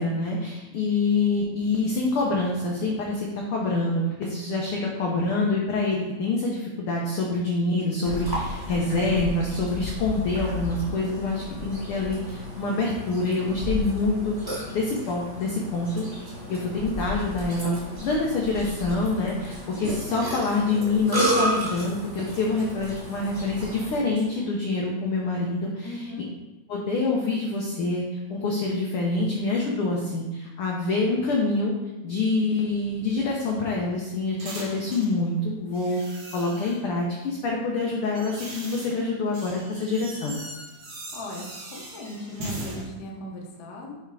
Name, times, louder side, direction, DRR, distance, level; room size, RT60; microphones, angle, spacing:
voice 1, 0.0-14.3 14.7-16.0 16.5-26.1 26.7-31.7 32.0-36.0 36.3-40.4, left 3 dB, 75° left, -2 dB, 1.3 m, -26 dB
Burping eructation, 8.0-24.0, equal, 10° right, 1.0 m, -32 dB
Female speech woman speaking, 16.0-20.2 20.8-24.8, right 1 dB, 75° right, 2.9 m, -48 dB
voice 2, 25.8-26.3 41.1-41.4 41.7-43.9, left 1 dB, 55° left, -2 dB, 1.1 m, -38 dB
sound 1, 32.8-35.2 35.7-36.9 37.7-42.8, right 1 dB, 50° right, 1.5 m, -40 dB
7.0 x 3.4 x 4.8 m, 1.0 s
omnidirectional pair, 3.4 m